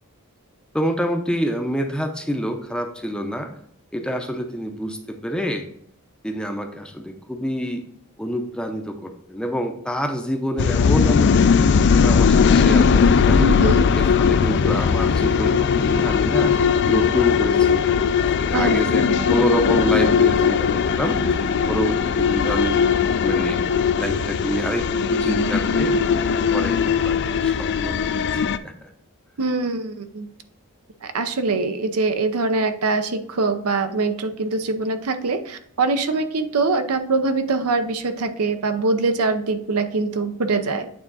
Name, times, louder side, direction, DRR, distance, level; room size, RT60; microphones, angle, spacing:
voice 1, 0.7-3.5 3.9-5.7 6.2-7.8 8.2-13.5 13.9-16.5 16.8-21.2 21.7-22.8 23.2-23.6 24.0-26.0 26.5-28.0 28.6-28.9, equal, 5° left, 5 dB, 0.6 m, -27 dB
sound 1, 10.6-28.6, left 6 dB, 50° left, 0.4 m, -19 dB
voice 2, 13.4-13.9 18.5-18.8 19.0-19.3 29.4-30.3 31.0-40.9, right 3 dB, 75° right, 9 dB, 0.7 m, -23 dB
8.8 x 3.5 x 4.1 m, 0.67 s
head